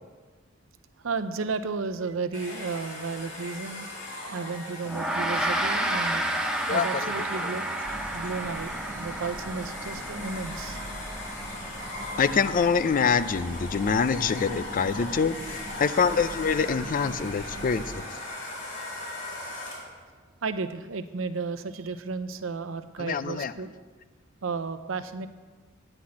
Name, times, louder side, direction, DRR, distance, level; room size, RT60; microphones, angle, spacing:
voice 1, 1.0-3.9 4.2-6.3 6.7-7.7 8.1-10.8 12.1-12.2 15.1-15.2 17.5-17.9 18.5-18.8 20.4-23.8 24.4-25.3, right 4 dB, 75° right, 11 dB, 0.6 m, -33 dB
Domestic sounds home sounds, 2.3-20.0, left 2 dB, 65° left, 3.8 m, -39 dB
Gong, 4.9-14.5, right 1 dB, 5° right, 0.9 m, -32 dB
voice 2, 6.7-7.1 12.2-18.0 23.0-23.5, left 5 dB, 45° left, 14 dB, 0.4 m, -25 dB
sound 1, 7.8-18.0, right 1 dB, 35° right, 1.1 m, -42 dB
9.9 x 6.0 x 8.5 m, 1.4 s
head